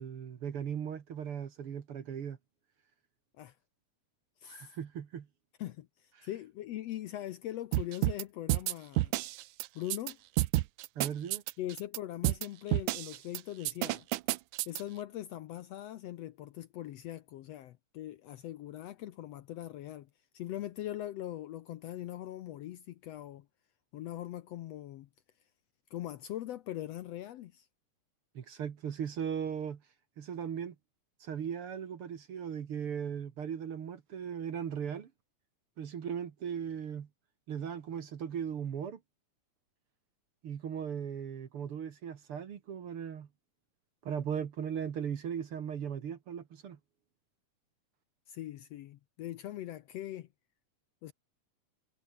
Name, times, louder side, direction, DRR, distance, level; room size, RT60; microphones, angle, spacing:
voice 1, 0.0-2.4 4.4-5.3 6.2-6.3 11.0-11.4 28.3-29.8 30.2-30.8 31.2-35.1 35.8-37.1 37.5-39.0 40.4-43.3 44.0-46.8, right 8 dB, 50° right, 2.1 m, -38 dB
voice 2, 4.4-4.7 5.6-9.1 9.7-10.2 11.6-14.1 14.7-20.1 20.3-23.5 23.9-25.1 25.9-27.7 48.3-50.3 51.0-51.1, left 13 dB, 70° left, 1.7 m, -41 dB
sound 1, 7.7-8.2 8.5-10.1 10.4-12.0 12.2-12.5 12.7-13.4 13.7-14.8, right 18 dB, 85° right, 2.1 m, -29 dB
omnidirectional pair, 3.5 m